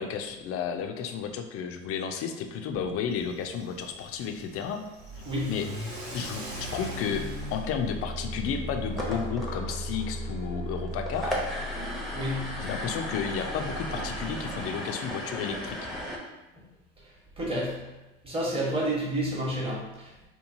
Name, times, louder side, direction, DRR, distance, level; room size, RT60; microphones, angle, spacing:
voice 1, 0.0-4.8 5.5-5.7 6.1-11.3 12.6-15.9, left 7 dB, 50° left, 6 dB, 0.4 m, -32 dB
Car / Accelerating revving vroom, 3.1-9.3, equal, 45° right, 1.0 m, -41 dB
voice 2, 5.2-5.6 12.1-12.7 16.6-16.7 17.0-17.9 18.2-20.3, right 1 dB, 15° right, -4 dB, 1.0 m, -31 dB
sound 1, 7.1-14.6, equal, 80° right, 0.8 m, -38 dB
sound 2, 8.8-16.2, equal, ahead, 0.6 m, -36 dB
2.9 x 2.2 x 2.6 m, 1.0 s
hypercardioid pair, 80°, 31 cm